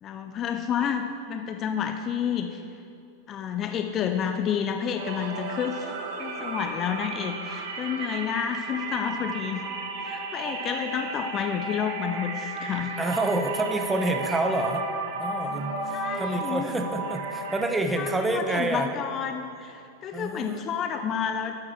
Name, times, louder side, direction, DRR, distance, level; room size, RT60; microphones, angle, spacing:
voice 1, 0.0-2.6 3.3-9.6 10.0-12.9 15.9-16.7 18.0-21.5, left 8 dB, 30° left, 6 dB, 0.4 m, -30 dB
sound 1, 5.0-17.6, right 3 dB, 50° right, 0.8 m, -34 dB
voice 2, 13.0-14.8 15.2-18.9 20.1-20.6, right 2 dB, 10° right, 4 dB, 0.6 m, -28 dB
8.6 x 8.5 x 3.1 m, 2.5 s
figure-of-eight pair, 90°, 0 cm